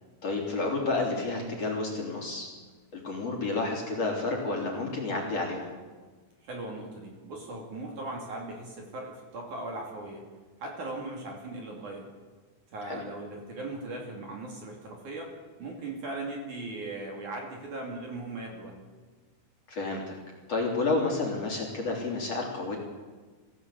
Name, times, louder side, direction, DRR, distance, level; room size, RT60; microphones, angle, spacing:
voice 1, 0.2-2.5 2.9-5.7 12.8-13.0 19.7-20.1 20.5-22.8, left 3 dB, 40° left, -1 dB, 3.6 m, -30 dB
voice 2, 6.4-10.2 10.6-12.1 12.7-15.3 15.6-18.8, right 2 dB, 50° right, 0 dB, 3.5 m, -38 dB
22.0 x 16.0 x 8.2 m, 1.4 s
omnidirectional pair, 5.1 m